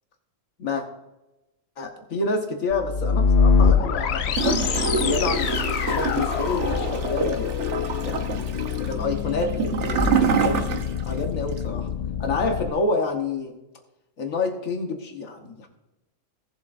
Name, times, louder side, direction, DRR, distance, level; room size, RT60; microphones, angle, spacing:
voice 1, 1.8-7.5 8.0-10.8 11.1-11.9 12.2-13.6 14.2-15.7, left 3 dB, 90° left, 3 dB, 1.7 m, -28 dB
sound 1, 2.7-12.7, left 6 dB, 60° left, 0.8 m, -25 dB
Gurgling / Toilet flush, 4.3-11.2 11.5-11.6, right 6 dB, 65° right, 1.2 m, -26 dB
Thump thud, 6.5-7.2 9.9-10.4, equal, 35° right, 1.2 m, -31 dB
17.5 x 7.7 x 2.6 m, 0.98 s
omnidirectional pair, 1.4 m